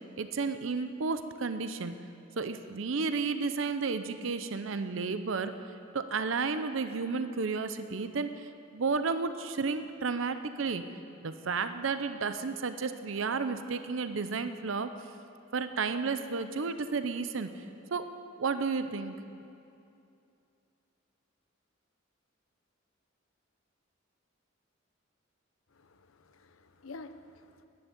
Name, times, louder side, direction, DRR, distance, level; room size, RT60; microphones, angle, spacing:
voice 1, 0.2-1.9 2.4-5.5 5.9-10.8 11.2-14.9 15.5-17.5 17.9-18.1 18.4-19.2, right 4 dB, 65° right, 10 dB, 0.6 m, -32 dB
voice 2, 25.7-27.6, left 3 dB, 85° left, 10 dB, 0.8 m, -49 dB
10.5 x 9.9 x 9.7 m, 2.6 s
head